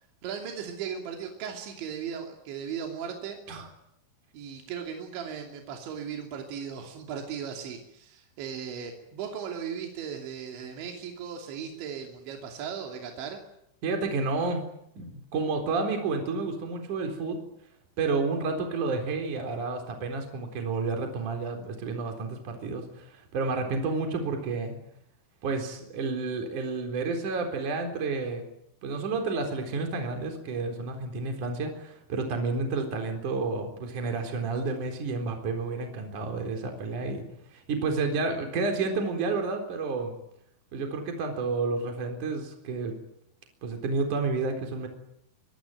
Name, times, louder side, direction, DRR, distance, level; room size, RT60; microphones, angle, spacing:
voice 1, 0.2-3.4 4.3-13.4, right 7 dB, 75° right, 2 dB, 5.1 m, -37 dB
voice 2, 13.8-14.6 15.0-17.4 18.0-24.8 25.4-28.5 28.8-37.2 37.5-40.1 40.7-43.0 43.6-44.9, right 3 dB, 45° right, 4 dB, 5.1 m, -30 dB
24.5 x 24.0 x 9.2 m, 0.77 s
omnidirectional pair, 5.3 m